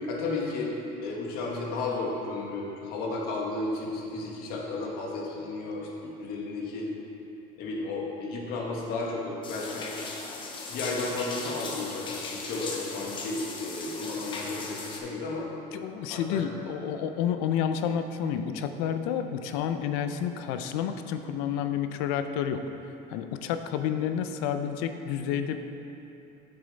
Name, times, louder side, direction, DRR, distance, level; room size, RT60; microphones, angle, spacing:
voice 1, 0.1-0.7 1.0-6.9 7.6-10.0 10.7-15.5 16.1-16.4, left 3 dB, 60° left, -2 dB, 1.4 m, -33 dB
sound 1, 9.4-15.0, left 3 dB, 25° left, 0.8 m, -38 dB
voice 2, 15.7-25.6, left 8 dB, 85° left, 8 dB, 0.5 m, -30 dB
7.1 x 6.7 x 4.0 m, 3.0 s
cardioid pair, 160°, 18 cm